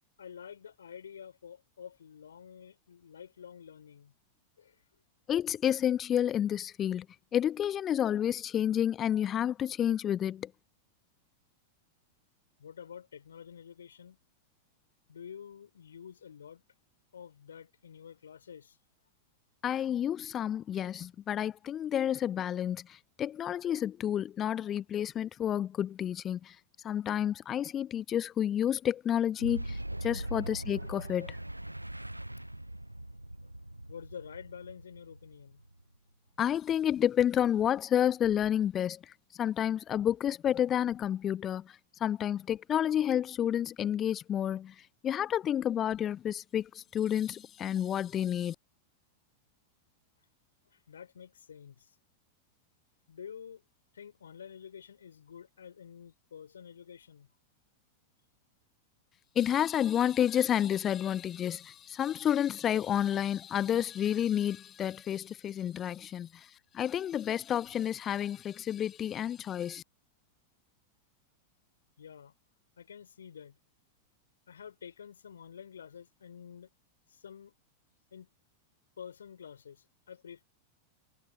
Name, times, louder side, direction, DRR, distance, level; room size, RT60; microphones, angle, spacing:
voice 1, 0.2-4.1 4.6-4.8 12.6-14.2 15.1-16.6 17.1-18.8 33.4-33.5 33.9-35.6 50.6-52.0 53.1-53.6 53.9-57.3 72.0-72.4 72.8-73.6 74.5-76.7 77.1-77.5 78.1-78.3 79.0-80.4, left 7 dB, 70° left, 4.4 m, -49 dB
voice 2, 5.3-7.1 7.3-10.5 19.6-26.6 26.8-31.4 36.4-39.0 39.4-41.7 42.0-44.7 45.0-48.5 59.4-66.5 66.7-69.8, left 10 dB, 25° left, 0.7 m, -30 dB
Boom, 29.4-36.0, right 1 dB, 85° right, 0.5 m, -41 dB
figure-of-eight pair, 90°, 0 cm